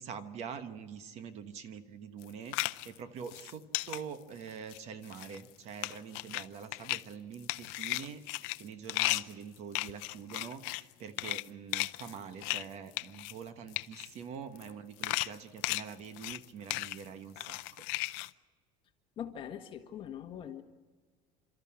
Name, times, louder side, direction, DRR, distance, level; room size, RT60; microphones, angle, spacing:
voice 1, 0.0-17.9, right 7 dB, 40° right, 11 dB, 1.2 m, -45 dB
sound 1, 2.2-3.0 3.3-4.0 4.5-4.8 5.0-5.5 5.8-6.5 6.7-7.0 7.3-10.9 11.2-11.5 11.7-12.6 12.9-13.4 13.7-14.1 14.6-14.7 15.0-16.4 16.7-17.0 17.4-18.3, left 23 dB, 70° left, 0.6 m, -35 dB
voice 2, 19.2-20.6, left 9 dB, 35° left, 5 dB, 1.6 m, -42 dB
29.0 x 13.5 x 8.7 m, 1.4 s
cardioid pair, 170°, 16 cm